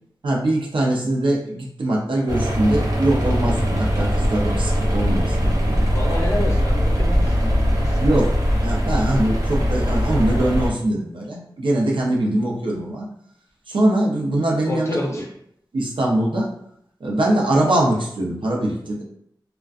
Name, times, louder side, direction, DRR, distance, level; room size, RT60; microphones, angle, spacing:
voice 1, 0.2-5.9 8.0-8.3 8.6-13.1 13.7-15.2 15.7-16.5 17.0-19.0, right 1 dB, 85° right, -2 dB, 0.6 m, -22 dB
sound 1, 2.3-10.7, equal, 40° right, 0.6 m, -21 dB
voice 2, 5.8-8.1 14.6-15.3, left 1 dB, 35° left, -1 dB, 0.6 m, -29 dB
2.3 x 2.2 x 2.4 m, 0.70 s
wide cardioid pair, 80°, 8 cm